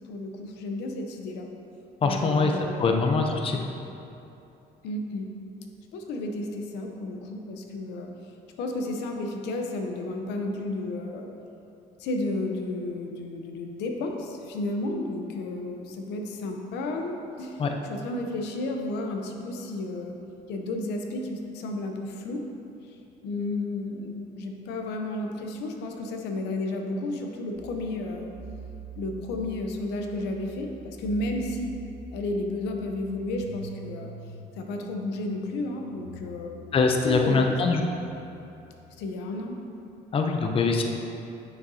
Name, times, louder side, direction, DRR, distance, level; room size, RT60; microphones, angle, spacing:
voice 1, 0.1-1.5 2.0-2.9 3.5-3.7 4.8-5.3 5.9-8.1 8.6-11.3 12.0-17.6 17.9-20.2 20.5-22.4 22.9-23.0 23.2-28.3 29.0-31.7 32.1-34.1 34.6-36.6 37.0-37.6 39.0-39.6, left 2 dB, 85° left, 3 dB, 0.7 m, -32 dB
voice 2, 2.0-2.5 2.8-3.6 17.6-17.7 36.7-37.8 40.1-40.8, left 4 dB, 35° left, 3 dB, 0.6 m, -23 dB
sound 1, 27.5-39.0, right 3 dB, 85° right, 1.2 m, -46 dB
9.1 x 6.3 x 2.8 m, 2.8 s
cardioid pair, 110°, 17 cm